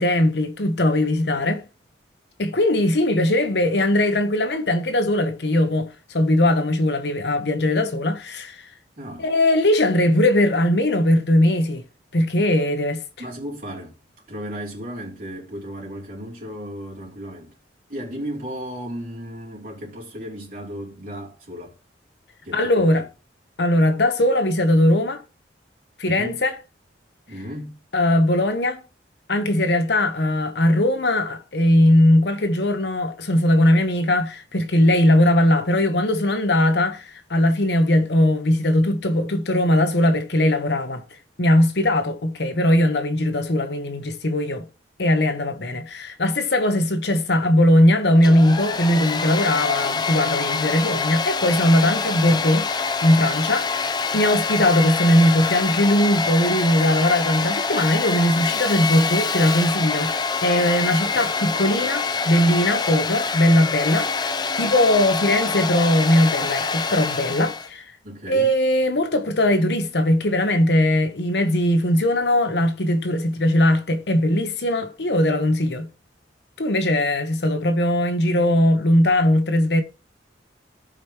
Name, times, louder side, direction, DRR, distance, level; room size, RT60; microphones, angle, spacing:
voice 1, 0.0-1.6 2.4-8.7 9.2-11.8 12.1-13.0 22.5-23.0 23.6-25.2 26.0-26.5 27.9-28.8 29.3-41.0 41.4-44.7 45.0-53.8 54.1-67.8 68.3-75.9 76.6-79.8, left 1 dB, 65° left, 1.0 m, -20 dB
voice 2, 9.0-9.3 13.2-13.9 14.3-17.5 17.9-21.7 22.4-23.0 26.1-26.5 27.3-27.8 68.0-68.6, equal, 50° right, 3.0 m, -35 dB
Domestic sounds home sounds, 48.1-67.7, left 4 dB, 25° left, 0.5 m, -25 dB
15.5 x 5.2 x 3.0 m
head